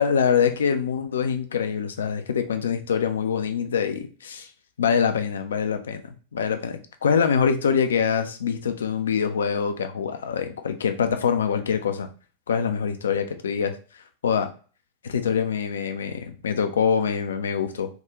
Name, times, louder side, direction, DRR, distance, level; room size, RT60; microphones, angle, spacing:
voice 1, 0.0-4.5 4.8-12.1 12.5-13.8 14.2-14.5 15.0-17.9, left 7 dB, 65° left, 8 dB, 0.4 m, -24 dB
3.5 x 2.3 x 2.9 m, 0.38 s
figure-of-eight pair, 90°, 0 cm